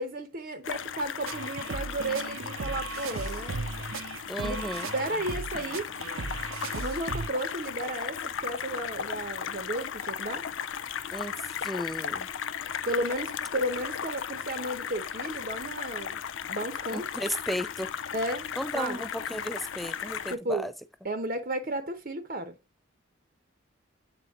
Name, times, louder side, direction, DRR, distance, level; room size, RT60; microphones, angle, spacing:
voice 1, 0.0-3.7 4.4-5.9 6.7-10.5 12.8-16.2 16.5-17.1 18.1-19.0 20.3-20.7 21.0-22.6, right 1 dB, 45° right, 0.8 m, -33 dB
sound 1, 0.6-20.3, left 8 dB, 65° left, 0.4 m, -36 dB
sound 2, 1.2-7.3, right 4 dB, 85° right, 0.7 m, -37 dB
voice 2, 4.3-4.9 11.1-11.3 11.6-12.3 16.9-17.9 18.6-20.7, equal, ahead, 0.3 m, -34 dB
7.9 x 4.1 x 3.6 m
head